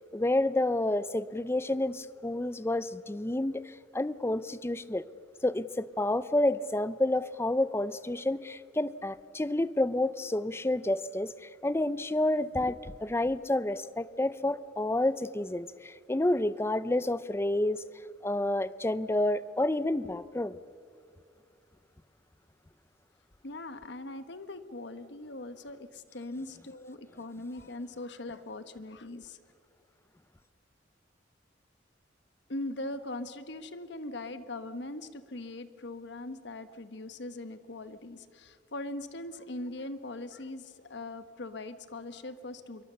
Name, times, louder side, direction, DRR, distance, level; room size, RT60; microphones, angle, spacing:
voice 1, 0.1-5.0 5.4-17.8 18.2-20.6, left 1 dB, 15° left, 0.5 m, -29 dB
voice 2, 23.4-29.4 32.5-42.8, left 2 dB, 65° left, 1.2 m, -41 dB
26.0 x 23.0 x 6.8 m
head